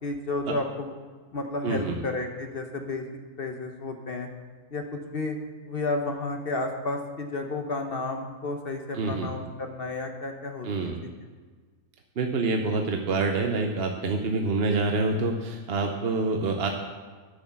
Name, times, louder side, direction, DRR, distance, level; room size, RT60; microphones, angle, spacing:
voice 1, 0.0-0.9 1.3-3.0 3.4-4.3 4.7-5.4 5.7-11.1, left 2 dB, 45° left, 4 dB, 0.9 m, -32 dB
voice 2, 1.6-2.0 8.9-9.3 10.6-11.0 12.2-16.7, right 3 dB, 50° right, 3 dB, 0.9 m, -27 dB
10.0 x 6.2 x 7.0 m, 1.5 s
omnidirectional pair, 1.5 m